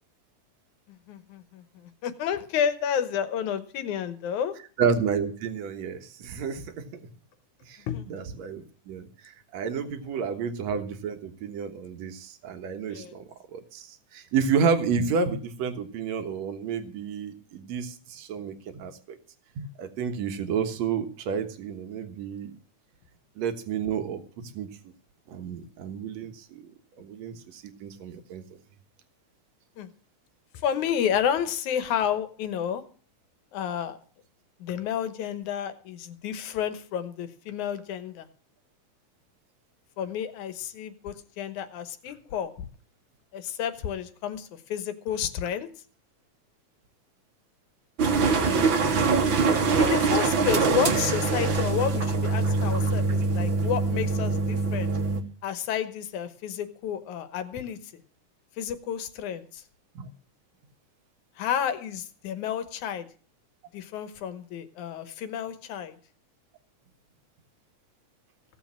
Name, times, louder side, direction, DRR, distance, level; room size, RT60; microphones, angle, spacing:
voice 1, 1.1-1.6 2.0-4.5 7.9-8.1 12.9-13.1 29.8-29.9 30.5-32.8 33.5-34.0 34.6-38.3 40.0-42.5 43.3-45.7 49.8-54.9 55.4-57.8 58.6-59.6 61.4-63.1 63.7-66.0, left 9 dB, 80° left, 11 dB, 2.6 m, -30 dB
voice 2, 4.8-6.9 7.7-13.2 13.5-19.2 19.6-22.5 23.4-24.9 25.3-26.7 27.0-28.6 60.0-60.1, right 6 dB, 70° right, 7 dB, 2.5 m, -30 dB
sound 1, 48.0-55.2, right 4 dB, 50° right, 1.8 m, -24 dB
16.5 x 7.4 x 7.3 m, 0.41 s
omnidirectional pair, 3.4 m